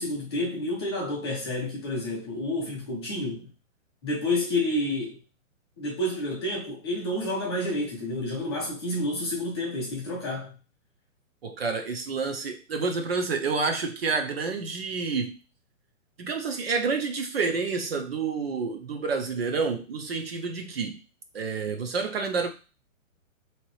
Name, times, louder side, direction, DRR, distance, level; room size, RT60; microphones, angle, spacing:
voice 1, 0.0-3.5 4.0-5.2 5.8-10.5, left 1 dB, 20° left, 0.7 m, -29 dB
voice 2, 11.4-15.4 16.2-21.0 21.3-22.5, right 4 dB, 45° right, 0.6 m, -29 dB
3.7 x 2.9 x 3.1 m
hypercardioid pair, 170°, 41 cm